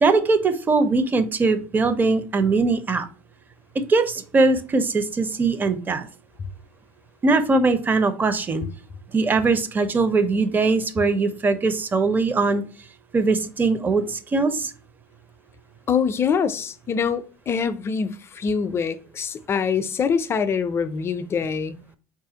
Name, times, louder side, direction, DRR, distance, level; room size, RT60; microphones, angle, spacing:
voice 1, 0.0-3.1 3.7-6.1 7.2-8.6 9.1-12.6 13.1-14.7, right 3 dB, 25° right, 0.5 m, -21 dB
voice 2, 15.9-21.8, left 6 dB, 35° left, 0.4 m, -24 dB
4.4 x 2.4 x 2.8 m
supercardioid pair, 95°, 8 cm